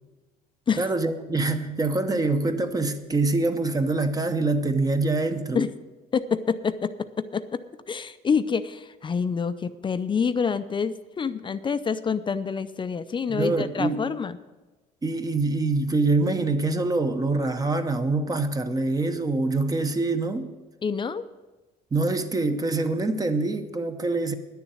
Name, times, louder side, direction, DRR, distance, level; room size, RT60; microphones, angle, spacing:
voice 1, 0.8-5.7 13.3-14.1 15.0-20.5 21.9-24.3, right 3 dB, 20° right, 0.8 m, -25 dB
voice 2, 6.1-7.6 7.9-14.4 20.8-21.2, left 6 dB, 30° left, 0.5 m, -27 dB
10.0 x 7.0 x 9.2 m
cardioid pair, 110°, 17 cm